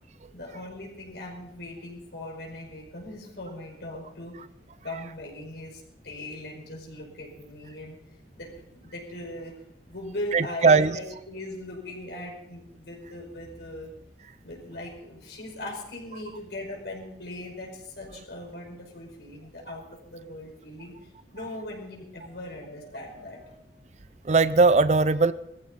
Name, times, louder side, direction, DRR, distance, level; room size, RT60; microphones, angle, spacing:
voice 1, 0.3-4.3 4.8-8.0 8.4-9.6 9.9-13.9 14.4-23.6, left 1 dB, 75° left, 0 dB, 5.2 m, -39 dB
voice 2, 10.3-10.9 24.3-25.3, right 4 dB, 40° right, 15 dB, 0.5 m, -19 dB
20.0 x 14.5 x 4.1 m, 0.81 s
head